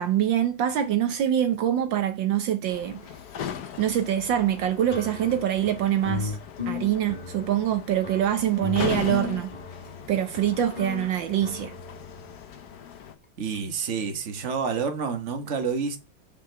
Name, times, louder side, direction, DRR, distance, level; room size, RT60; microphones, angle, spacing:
voice 1, 0.0-3.0 3.8-6.3 6.7-9.5 10.1-11.7, right 11 dB, 75° right, 1.5 m, -24 dB
sound 1, 2.7-13.2, left 9 dB, 60° left, 1.3 m, -39 dB
sound 2, 4.9-12.3, left 5 dB, 25° left, 2.0 m, -36 dB
voice 2, 13.4-16.0, right 5 dB, 40° right, 1.5 m, -28 dB
7.2 x 5.0 x 6.1 m
omnidirectional pair, 2.1 m